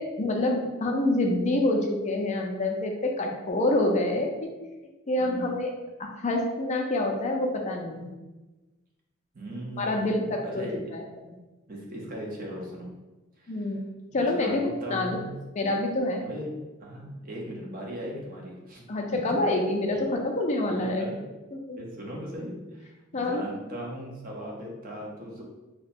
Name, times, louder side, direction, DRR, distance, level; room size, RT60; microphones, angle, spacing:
voice 1, 0.0-4.3 5.1-5.7 6.0-8.1 9.8-10.6 10.9-11.0 11.3-11.4 13.5-13.8 14.1-15.2 15.5-16.2 18.9-21.1 21.5-21.8 23.1-23.4, left 2 dB, 35° left, 2 dB, 0.4 m, -27 dB
voice 2, 5.2-5.5 9.3-10.8 11.7-12.9 13.4-13.7 14.1-15.3 16.2-16.5 16.8-18.9 19.9-20.1 20.7-21.2 21.8-25.4, equal, 45° right, -2 dB, 0.7 m, -38 dB
2.8 x 2.2 x 4.1 m, 1.1 s
head